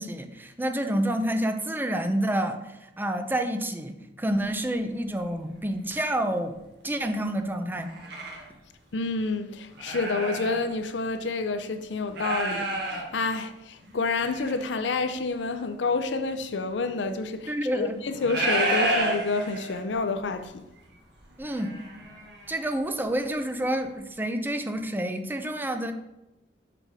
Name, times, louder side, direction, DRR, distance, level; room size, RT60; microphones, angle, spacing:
voice 1, 0.0-2.6 3.0-7.9 17.5-17.9 21.4-21.8 22.5-25.9, right 1 dB, 10° right, 0.6 m, -28 dB
sound 1, 4.3-4.4 5.1-5.2 5.8-6.1 7.7-8.5 9.0-9.1 9.7-10.7 11.0-11.1 12.1-13.1 13.8-14.6 16.3-16.4 18.0-19.9 20.3-20.5 20.8-22.7 23.1-23.2, right 1 dB, 65° right, 1.6 m, -31 dB
voice 2, 8.9-20.6, left 3 dB, 75° left, 0.6 m, -29 dB
5.7 x 5.1 x 4.9 m
head